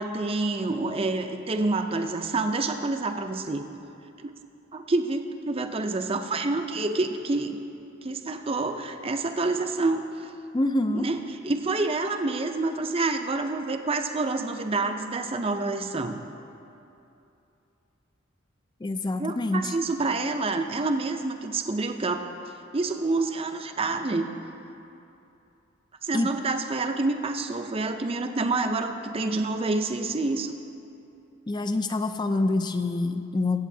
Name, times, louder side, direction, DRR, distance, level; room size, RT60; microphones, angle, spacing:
voice 1, 0.0-3.6 4.2-4.3 4.7-7.6 8.0-10.0 10.9-16.2 19.2-22.2 22.7-24.3 26.0-30.5, right 3 dB, 30° right, 6 dB, 0.5 m, -28 dB
voice 2, 10.5-11.1 18.8-19.7 26.1-26.3 31.5-33.6, left 2 dB, 20° left, 9 dB, 0.4 m, -26 dB
22.0 x 8.2 x 2.7 m, 2.8 s
head